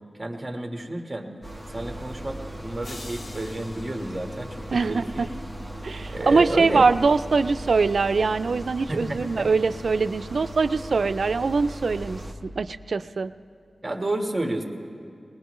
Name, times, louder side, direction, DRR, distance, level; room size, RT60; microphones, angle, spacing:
voice 1, 0.2-1.3 1.7-4.6 4.9-5.3 6.1-6.9 8.9-9.5 13.8-14.6, right 1 dB, 25° right, 3 dB, 1.4 m, -30 dB
sound 1, 1.4-12.3, equal, 10° left, 1.2 m, -38 dB
sound 2, 2.8-5.2, left 2 dB, 60° left, 0.8 m, -45 dB
voice 2, 4.7-5.3 5.8-13.3, right 4 dB, 75° right, 13 dB, 0.3 m, -23 dB
20.0 x 20.0 x 3.1 m, 2.3 s
wide cardioid pair, 95°, 0 cm